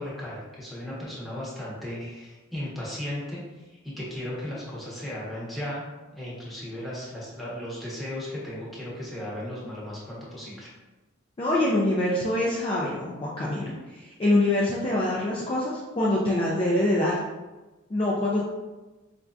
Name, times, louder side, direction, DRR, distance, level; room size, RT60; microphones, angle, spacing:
voice 1, 0.0-5.8 6.1-10.7, left 1 dB, ahead, -8 dB, 0.9 m, -36 dB
voice 2, 11.4-17.2 17.9-18.4, left 1 dB, 25° left, -5 dB, 0.4 m, -25 dB
4.4 x 2.5 x 2.3 m, 1.2 s
head